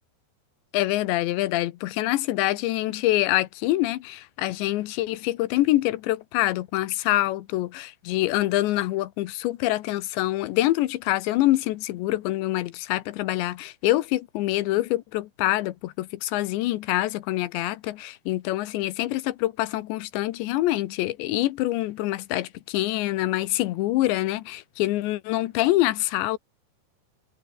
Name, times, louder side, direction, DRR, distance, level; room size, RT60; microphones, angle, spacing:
voice 1, 0.7-26.4, left 16 dB, 80° left, 3.3 m, -25 dB
omnidirectional pair, 5.2 m